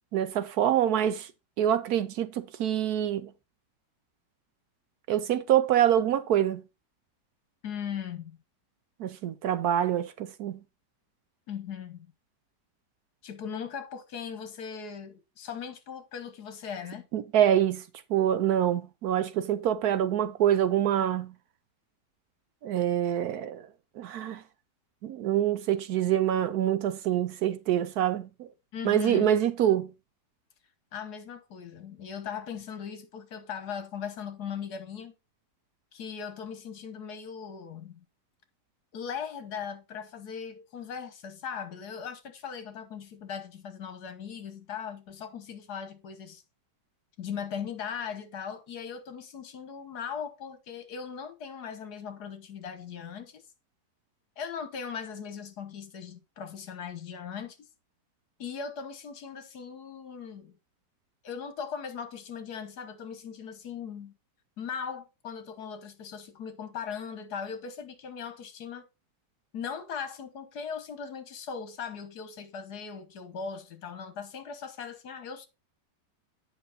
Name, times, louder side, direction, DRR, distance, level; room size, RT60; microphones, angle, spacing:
voice 1, 0.1-1.3 1.6-3.3 5.1-6.6 9.0-10.6 17.1-17.8 18.1-21.3 22.6-23.7 24.0-24.4 25.0-28.5 28.8-29.9, right 10 dB, 70° right, 1.1 m, -25 dB
voice 2, 7.6-8.4 11.5-12.1 13.2-17.1 28.7-29.3 30.9-35.1 35.9-38.0 38.9-46.4 47.2-53.4 54.4-57.6 58.4-60.6 61.2-64.2 64.6-68.9 69.5-75.5, left 7 dB, 65° left, 1.6 m, -39 dB
8.8 x 5.5 x 4.0 m
omnidirectional pair, 1.9 m